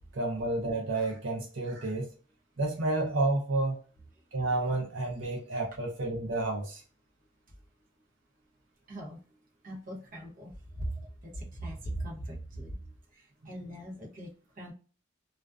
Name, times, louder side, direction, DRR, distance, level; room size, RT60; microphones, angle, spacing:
voice 1, 0.1-2.1 2.6-3.8 4.3-6.8, right 2 dB, 80° right, 0.6 m, -30 dB
voice 2, 9.6-12.8 13.2-14.3 14.6-14.7, right 1 dB, 45° right, 0.8 m, -40 dB
2.4 x 2.2 x 2.3 m
head